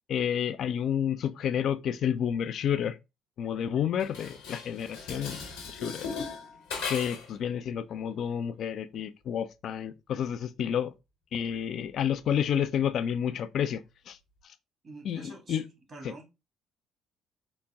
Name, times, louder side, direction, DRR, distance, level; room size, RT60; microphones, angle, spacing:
voice 1, 0.1-3.0 3.4-5.4 5.7-6.0 6.9-10.9 11.3-13.8 14.1-14.2 15.0-15.6, left 9 dB, 60° left, 0.4 m, -30 dB
Dishes pots and pans, 4.0-7.4, left 4 dB, 80° left, 1.2 m, -38 dB
voice 2, 14.8-15.6 15.9-16.3, right 2 dB, 45° right, 1.5 m, -46 dB
4.0 x 2.2 x 3.4 m
hypercardioid pair, 55°, 0 cm